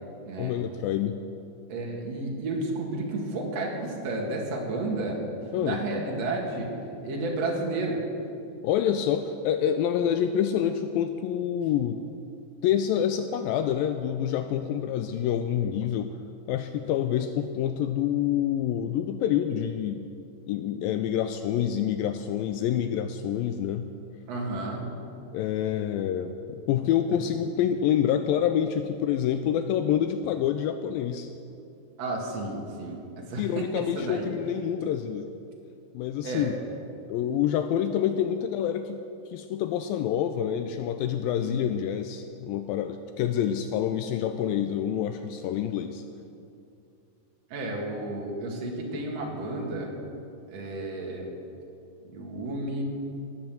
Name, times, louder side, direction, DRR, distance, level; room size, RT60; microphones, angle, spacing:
voice 1, 0.4-1.2 5.5-5.8 8.6-12.0 12.6-16.2 16.5-20.1 20.5-23.9 25.3-31.3 33.4-35.3 35.9-36.5 37.1-39.0 39.3-46.0, left 9 dB, 80° left, 8 dB, 2.3 m, -27 dB
voice 2, 1.7-5.2 5.6-6.7 7.0-8.0 24.3-24.9 32.0-34.3 36.2-36.5 41.4-41.7 47.5-49.9 50.5-51.3 52.0-52.8, right 2 dB, 50° right, -1 dB, 3.0 m, -32 dB
18.0 x 8.9 x 7.6 m, 2.6 s
omnidirectional pair, 4.2 m